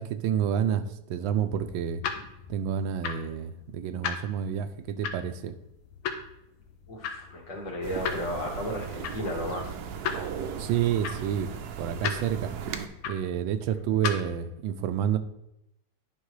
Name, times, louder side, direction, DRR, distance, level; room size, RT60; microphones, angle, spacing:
voice 1, 0.0-2.0 2.5-5.6 10.6-11.5 11.8-12.5 13.1-15.2, right 9 dB, 85° right, 10 dB, 1.4 m, -29 dB
sound 1, 1.5-14.4, left 6 dB, 90° left, 1.5 m, -38 dB
voice 2, 6.9-9.8, equal, 65° left, -1 dB, 2.3 m, -34 dB
sound 2, 7.8-12.9, right 7 dB, 70° right, 1.1 m, -37 dB
10.0 x 5.3 x 3.2 m, 0.83 s
omnidirectional pair, 2.1 m